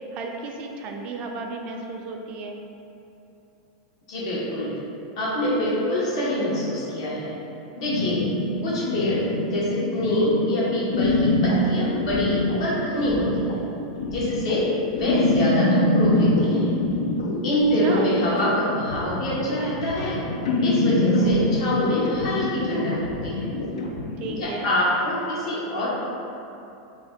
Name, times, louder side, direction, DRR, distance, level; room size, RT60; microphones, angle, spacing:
voice 1, 0.1-2.6 17.8-18.1 24.2-24.7, right 3 dB, 40° right, 2 dB, 0.3 m, -33 dB
voice 2, 4.1-4.7 5.2-7.3 7.8-8.3 8.6-13.6 14.1-16.7 17.4-20.2 20.6-23.5 24.4-25.9, left 1 dB, 70° left, -7 dB, 0.9 m, -25 dB
sound 1, 7.8-24.4, left 2 dB, 90° left, 0.3 m, -25 dB
2.5 x 2.2 x 3.4 m, 2.8 s
supercardioid pair, 120°, 3 cm